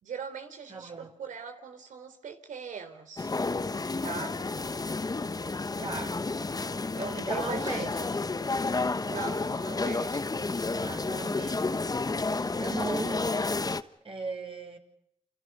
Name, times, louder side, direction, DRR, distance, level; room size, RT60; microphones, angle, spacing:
voice 1, 0.0-3.3 4.0-4.4 7.2-8.1 9.1-10.2, right 6 dB, 85° right, 7 dB, 3.6 m, -41 dB
voice 2, 0.7-1.1 5.8-6.2 7.0-8.3 10.8-11.9 12.4-13.4 14.0-14.8, right 3 dB, 45° right, 3 dB, 6.1 m, -37 dB
sound 1, 3.2-13.8, left 3 dB, 30° left, 1.2 m, -31 dB
28.5 x 28.5 x 5.5 m, 0.76 s
cardioid pair, 65°, 13 cm